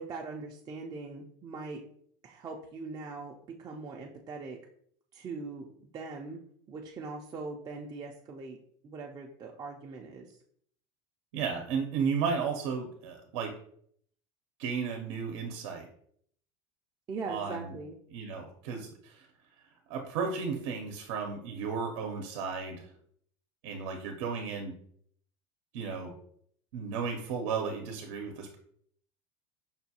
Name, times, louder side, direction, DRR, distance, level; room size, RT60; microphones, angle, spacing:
voice 1, 0.0-1.8 2.2-4.6 5.1-6.4 6.7-8.6 8.8-10.4 17.1-17.9, right 4 dB, 25° right, 0 dB, 0.4 m, -41 dB
voice 2, 11.3-13.5 14.6-15.9 17.3-17.7 18.1-19.3 19.9-22.9 23.6-24.7 25.7-26.1 26.7-28.6, right 5 dB, 75° right, 4 dB, 0.7 m, -34 dB
5.4 x 2.2 x 2.8 m, 0.64 s
supercardioid pair, 125°, 15 cm